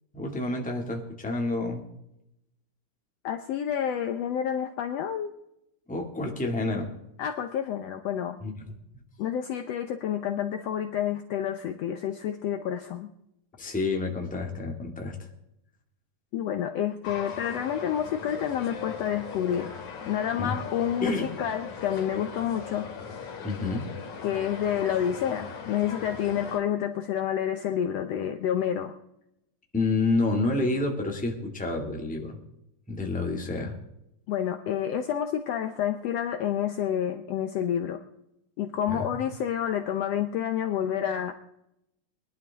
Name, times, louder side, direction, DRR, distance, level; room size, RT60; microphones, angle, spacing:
voice 1, 0.1-1.8 5.9-6.9 8.4-8.7 13.6-15.1 20.4-20.5 21.0-21.3 23.4-23.9 29.7-32.4 32.9-33.8 38.9-39.2, left 2 dB, 5° left, 1 dB, 1.3 m, -29 dB
voice 2, 3.2-5.3 7.2-8.4 9.2-13.1 16.3-19.7 20.1-22.9 24.2-28.9 34.3-38.0 38.6-41.3, left 9 dB, 90° left, 6 dB, 1.4 m, -29 dB
sound 1, 17.0-26.6, left 6 dB, 60° left, 3.7 m, -39 dB
22.5 x 11.5 x 3.6 m, 0.82 s
omnidirectional pair, 3.9 m